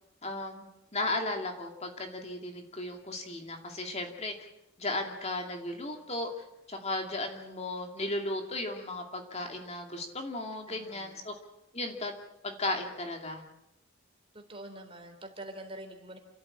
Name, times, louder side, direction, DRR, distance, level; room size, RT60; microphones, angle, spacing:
voice 1, 0.2-4.3 4.8-6.3 6.7-11.3 11.7-12.1 12.4-13.4, left 2 dB, 30° left, 4 dB, 2.5 m, -35 dB
voice 2, 10.7-11.2 14.3-16.2, right 1 dB, 25° right, 4 dB, 3.6 m, -45 dB
29.0 x 14.0 x 8.8 m, 0.88 s
head